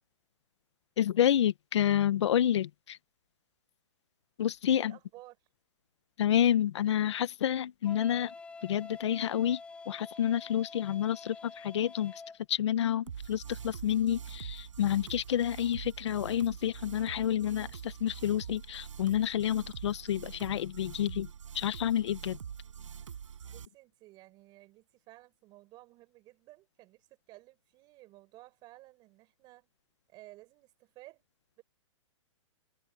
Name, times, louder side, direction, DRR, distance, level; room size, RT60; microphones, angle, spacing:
voice 1, 1.0-3.0 4.4-4.9 6.2-8.3 8.6-12.1 12.5-21.3 21.5-22.4, left 10 dB, 65° left, 1.5 m, -29 dB
voice 2, 4.8-5.5 23.5-29.7 30.1-31.2 31.6-31.7, right 18 dB, 25° right, 5.5 m, -55 dB
Wind instrument woodwind instrument, 7.8-12.4, left 4 dB, 5° left, 6.2 m, -47 dB
sound 1, 13.1-23.7, right 7 dB, 80° right, 7.0 m, -44 dB
hypercardioid pair, 150°, 16 cm